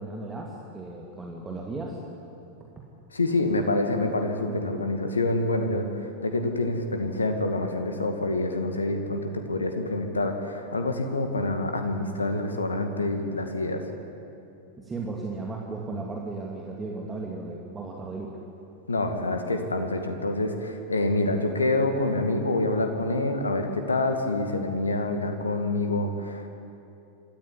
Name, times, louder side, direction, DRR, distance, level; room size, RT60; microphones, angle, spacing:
voice 1, 0.0-2.0 14.8-18.4, right 3 dB, 15° right, -2 dB, 2.5 m, -35 dB
voice 2, 3.1-13.8 18.9-26.5, left 2 dB, 75° left, 6 dB, 2.2 m, -27 dB
25.0 x 14.0 x 9.9 m, 2.8 s
figure-of-eight pair, 90°, 0 cm